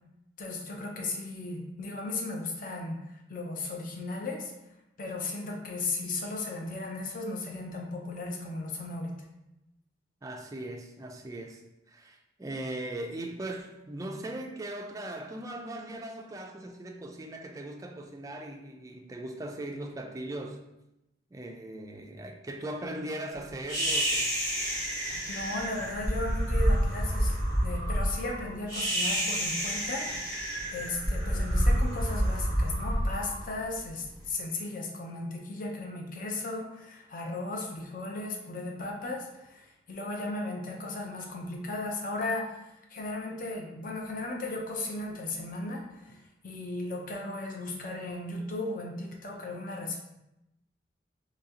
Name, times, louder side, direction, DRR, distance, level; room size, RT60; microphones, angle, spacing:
voice 1, 0.4-4.5 5.0-9.2 25.3-30.1 30.7-50.0, left 2 dB, 45° left, 0 dB, 0.6 m, -36 dB
voice 2, 10.2-11.6 11.9-20.6 21.3-24.4, right 1 dB, 20° right, 2 dB, 0.3 m, -39 dB
sound 1, 23.7-34.0, equal, 20° left, 1.5 m, -29 dB
3.9 x 3.1 x 2.8 m, 0.89 s
head